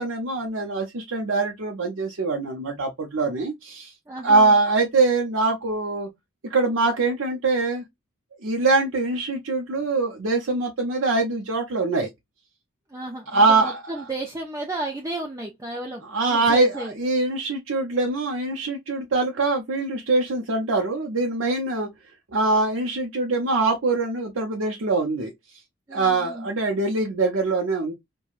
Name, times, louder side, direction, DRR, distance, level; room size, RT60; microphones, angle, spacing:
voice 1, 0.0-3.9 4.2-6.1 6.4-7.8 8.4-12.1 13.3-13.8 16.0-21.9 22.3-25.3 25.9-27.9, right 3 dB, 85° right, 0.7 m, -23 dB
voice 2, 4.1-4.5 12.9-16.9 25.9-26.5, right 2 dB, 15° right, 0.5 m, -33 dB
4.6 x 2.2 x 2.4 m
head